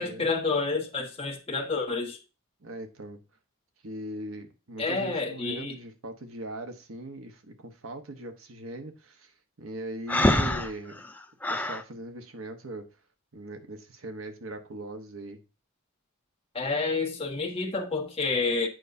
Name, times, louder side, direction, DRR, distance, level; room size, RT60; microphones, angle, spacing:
voice 1, 0.0-2.2 4.8-5.8 16.5-18.7, left 3 dB, 25° left, 1.4 m, -29 dB
voice 2, 2.6-3.2 3.8-9.3 9.6-11.0 11.5-12.9 13.3-15.4, right 1 dB, 80° right, 1.0 m, -40 dB
Breathing, 10.1-11.8, left 1 dB, 10° left, 0.4 m, -25 dB
9.1 x 5.4 x 2.7 m
head